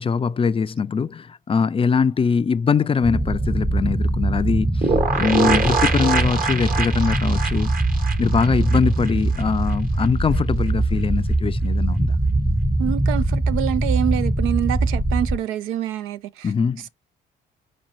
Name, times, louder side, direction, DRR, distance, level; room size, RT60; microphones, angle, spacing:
voice 1, 0.0-4.9 5.2-7.7 8.2-12.2 16.4-16.8, left 6 dB, 25° left, 0.4 m, -22 dB
sound 1, 3.0-15.4, right 2 dB, 5° right, 0.7 m, -22 dB
sound 2, 4.8-9.4 9.7-9.8 10.0-10.1, right 4 dB, 45° right, 1.2 m, -24 dB
voice 2, 12.8-16.5, right 11 dB, 85° right, 0.5 m, -26 dB
4.3 x 4.2 x 2.6 m
supercardioid pair, 70°, 20 cm